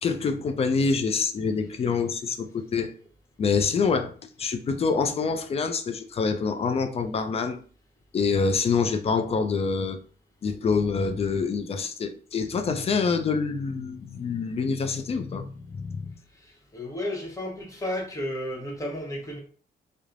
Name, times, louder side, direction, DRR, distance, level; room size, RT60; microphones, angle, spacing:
voice 1, 0.0-2.9 3.4-4.1 4.4-7.6 8.1-10.0 10.4-16.1, left 5 dB, 40° left, 0.4 m, -26 dB
voice 2, 16.4-19.4, left 1 dB, 20° left, 0.9 m, -33 dB
3.1 x 2.0 x 2.5 m
cardioid pair, 85°, 17 cm